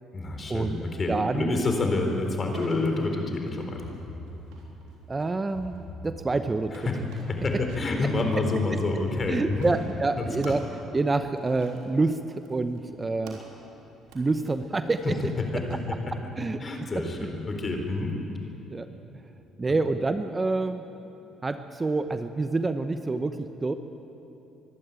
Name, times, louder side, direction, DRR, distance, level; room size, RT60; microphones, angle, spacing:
voice 1, 0.1-3.9 6.7-7.0 7.3-9.7 10.2-10.5 15.5-15.6 16.6-18.1, left 2 dB, 35° left, 4 dB, 3.9 m, -28 dB
voice 2, 1.1-1.6 2.1-2.2 5.1-6.8 9.3-10.6 10.9-13.4 14.1-15.3 16.1-16.6 17.2-17.3 18.7-18.9 19.6-20.8 21.4-23.7, right 3 dB, 25° right, 9 dB, 0.9 m, -27 dB
sound 1, 2.5-15.8, right 3 dB, 85° right, 3.6 m, -52 dB
sound 2, 3.7-4.9 5.5-6.7 7.3-8.5 9.1-10.3, left 2 dB, 55° left, 4.5 m, -43 dB
24.0 x 12.0 x 9.1 m, 2.9 s
supercardioid pair, 75°, 0 cm